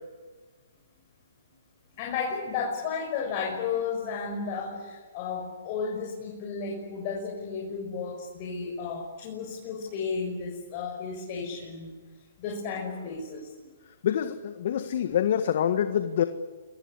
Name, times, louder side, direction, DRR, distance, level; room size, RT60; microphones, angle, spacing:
voice 1, 1.9-11.9 12.4-13.7, left 5 dB, 40° left, 0 dB, 6.3 m, -33 dB
voice 2, 14.0-16.2, left 9 dB, 55° left, 9 dB, 1.6 m, -26 dB
28.0 x 22.5 x 8.4 m, 1.4 s
hypercardioid pair, 135°, 0 cm